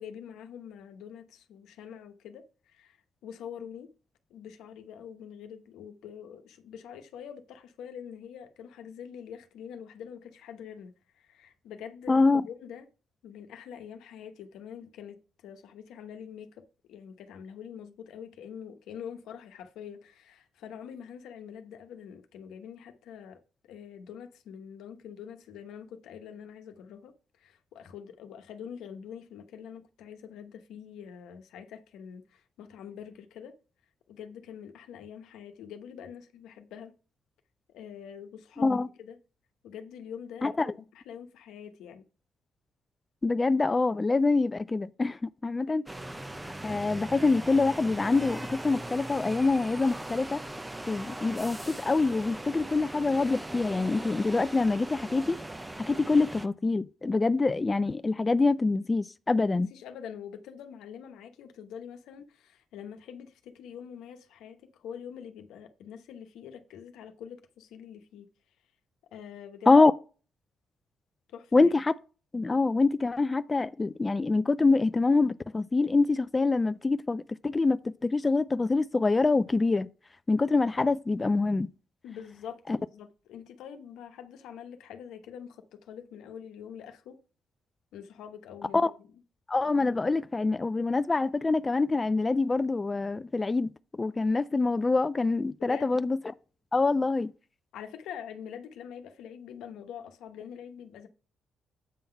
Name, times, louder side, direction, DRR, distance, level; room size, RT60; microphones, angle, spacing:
voice 1, 0.0-3.0 3.2-3.9 4.3-12.9 13.2-33.5 34.1-36.9 37.7-39.2 39.6-40.6 40.9-42.1 45.7-45.8 59.4-68.3 69.1-69.7 71.3-71.7 82.0-87.2 87.9-88.9 95.6-95.9 97.7-101.1, left 8 dB, 85° left, 0.9 m, -45 dB
voice 2, 12.1-12.4 38.6-38.9 40.4-40.7 43.2-45.8 46.6-50.4 50.9-55.4 55.8-59.7 69.7-69.9 71.5-71.9 72.3-79.9 80.3-81.7 82.7-82.8 88.7-88.9 89.5-93.7 94.0-96.2 96.7-97.3, left 3 dB, 25° left, 0.3 m, -25 dB
sound 1, 45.9-56.5, right 1 dB, 10° right, 0.6 m, -40 dB
8.3 x 3.8 x 5.7 m
cardioid pair, 90°, 0 cm